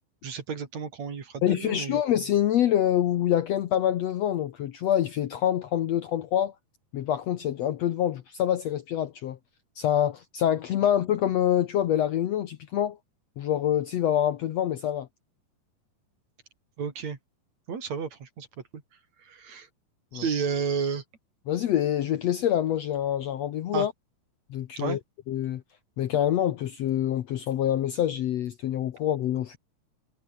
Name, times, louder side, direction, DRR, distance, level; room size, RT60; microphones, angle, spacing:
voice 1, 0.2-2.0 16.8-17.2 17.7-18.5 18.7-18.8 19.2-19.7 20.1-21.0 23.7-23.9 24.8-25.0, right 6 dB, 55° right, 4.1 m, -31 dB
voice 2, 1.4-6.5 6.9-9.4 9.8-13.0 13.4-15.1 20.1-20.3 21.5-23.9 24.5-25.0 25.3-25.6 26.0-29.6, left 11 dB, 65° left, 1.8 m, -26 dB
omnidirectional pair, 4.0 m